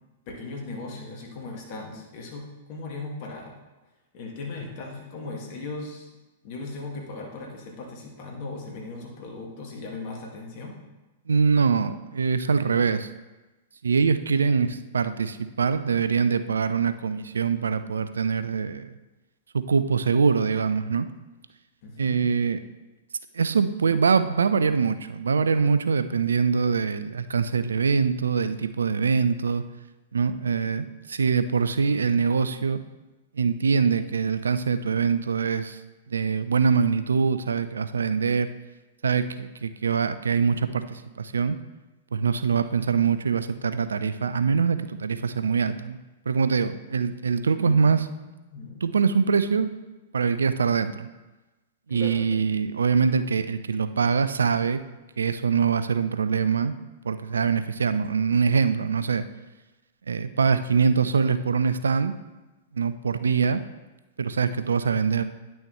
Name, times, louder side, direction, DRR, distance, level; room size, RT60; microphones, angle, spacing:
voice 1, 0.3-3.6 4.1-6.1 6.4-10.8 21.8-22.2 47.6-49.0 51.9-52.4, left 3 dB, 50° left, 0 dB, 1.9 m, -38 dB
voice 2, 11.3-13.1 13.8-18.9 19.5-21.1 22.0-22.6 23.3-29.6 30.1-32.8 33.3-35.8 36.1-38.5 39.0-41.6 42.1-46.0 46.3-48.1 48.8-49.7 50.1-51.1 51.9-54.8 55.2-56.8 57.0-59.2 60.1-62.1 62.7-63.6 64.2-65.2, right 5 dB, 75° right, 12 dB, 0.4 m, -23 dB
9.9 x 6.2 x 3.1 m, 1.1 s
figure-of-eight pair, 105°, 0 cm